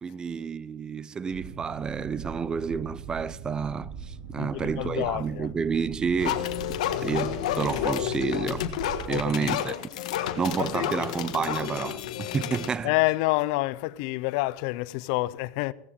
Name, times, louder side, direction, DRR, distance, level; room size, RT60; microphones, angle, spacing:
voice 1, 0.0-6.5 7.0-8.7 9.1-9.8 10.4-12.9, right 6 dB, 20° right, 0.5 m, -30 dB
Boat Water vehicle, 1.3-9.3, right 6 dB, 70° right, 2.2 m, -41 dB
voice 2, 4.4-5.5 9.1-9.7 10.6-11.1 12.8-15.7, left 20 dB, 65° left, 0.5 m, -28 dB
sound 1, 6.2-12.7, left 11 dB, 85° left, 1.3 m, -30 dB
16.5 x 14.5 x 4.4 m
supercardioid pair, 115°, 4 cm